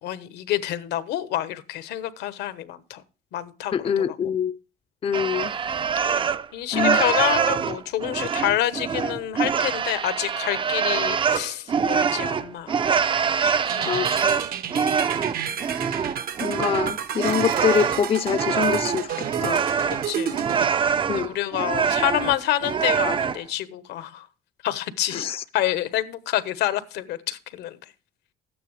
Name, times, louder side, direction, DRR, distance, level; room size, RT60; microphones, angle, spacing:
voice 1, 0.0-3.0 3.3-4.2 6.5-13.1 13.4-13.9 16.6-16.7 20.0-20.4 21.1-24.3 24.6-25.3 25.5-27.8, left 13 dB, 80° left, 1.1 m, -28 dB
voice 2, 3.7-4.6 5.0-5.5 6.7-7.1 13.9-14.4 16.4-19.6 21.1-21.3 25.1-25.4, left 8 dB, 35° left, 0.5 m, -25 dB
sound 1, 5.1-6.5 6.7-23.4, right 6 dB, 30° right, 0.5 m, -24 dB
sound 2, 13.7-20.7, right 9 dB, 60° right, 1.0 m, -31 dB
12.5 x 9.3 x 3.2 m
cardioid pair, 110°, 17 cm